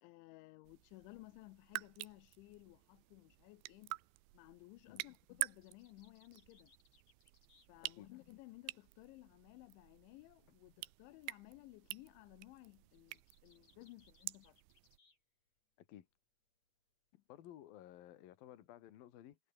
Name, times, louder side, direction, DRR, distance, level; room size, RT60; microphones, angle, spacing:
voice 1, 0.0-3.9 4.3-6.7 7.7-14.6 17.1-17.2, left 20 dB, 85° left, 3.1 m, -58 dB
sound 1, 0.6-15.0, right 21 dB, 80° right, 2.8 m, -49 dB
sound 2, 1.7-8.4 8.7-15.2 15.5-16.2 16.6-18.0, left 3 dB, 35° left, 7.2 m, -75 dB
voice 2, 17.3-19.4, left 12 dB, 60° left, 3.2 m, -55 dB
omnidirectional pair, 5.4 m